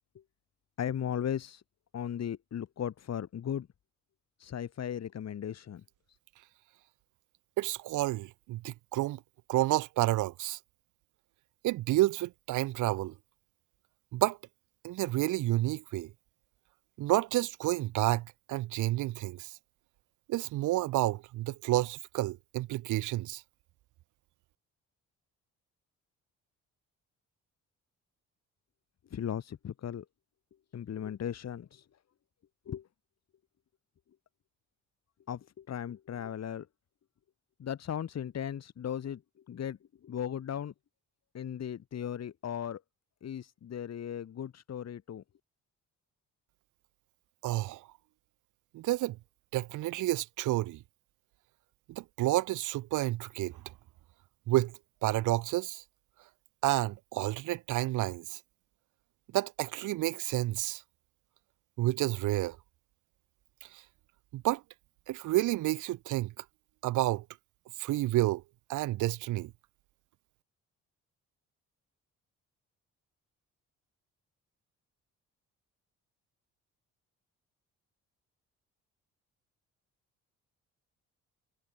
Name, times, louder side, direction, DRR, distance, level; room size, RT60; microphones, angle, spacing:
voice 1, 0.8-1.6 1.9-3.7 4.4-5.8 29.1-30.1 30.7-31.8 32.7-32.9 35.3-36.7 37.6-39.2 39.5-39.8 40.0-40.7 41.3-42.8 43.2-45.2, left 9 dB, 60° left, 4.0 m, -37 dB
voice 2, 7.6-9.2 9.5-10.6 11.6-13.1 14.1-14.4 14.8-16.1 17.0-19.5 20.3-23.4 47.4-47.8 48.7-49.2 49.5-50.8 51.9-53.5 54.5-55.8 56.6-58.4 59.3-60.8 61.8-62.6 64.3-64.6 65.1-66.4 66.8-67.2 67.8-68.4 68.7-69.5, right 17 dB, 90° right, 1.3 m, -30 dB
cardioid pair, 90°, 30 cm